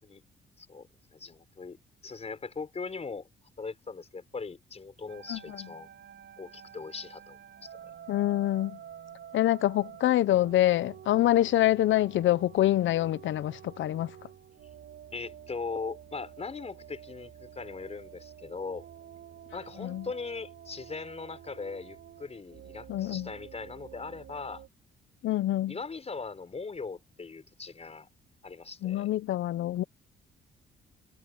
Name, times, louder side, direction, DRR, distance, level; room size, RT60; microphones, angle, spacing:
voice 1, 0.6-1.8 2.0-3.3 3.6-5.9 6.4-7.8 15.1-18.9 19.5-24.6 25.7-28.1 28.4-29.1, left 4 dB, 30° left, 5.5 m, -40 dB
sound 1, 5.1-24.7, right 9 dB, 65° right, 6.0 m, -49 dB
voice 2, 5.3-5.7 8.1-8.8 9.3-14.1 19.8-20.1 22.9-23.3 25.2-25.8 28.8-29.8, left 14 dB, 75° left, 0.8 m, -26 dB
cardioid pair, 90°, 20 cm